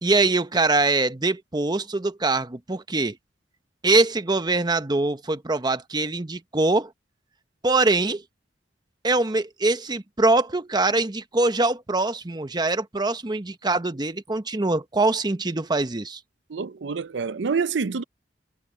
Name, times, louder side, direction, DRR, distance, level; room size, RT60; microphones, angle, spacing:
voice 1, 0.0-3.2 3.8-6.9 7.6-8.2 9.0-16.2, right 2 dB, 25° right, 0.9 m, -23 dB
voice 2, 16.5-18.0, right 5 dB, 90° right, 0.6 m, -27 dB
head